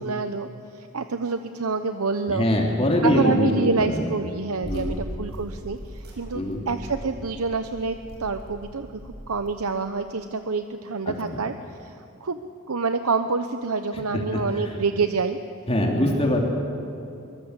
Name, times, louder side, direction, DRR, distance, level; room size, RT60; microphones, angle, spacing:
voice 1, 0.0-2.4 3.0-11.5 11.8-15.4, right 4 dB, 75° right, 8 dB, 0.9 m, -27 dB
voice 2, 2.3-4.0 4.7-5.0 6.3-6.6 11.0-11.4 14.1-14.7 15.7-16.4, left 1 dB, 25° left, 0 dB, 3.1 m, -23 dB
sound 1, 4.6-9.5, equal, 50° right, 6.4 m, -39 dB
25.0 x 24.0 x 8.2 m, 2.7 s
head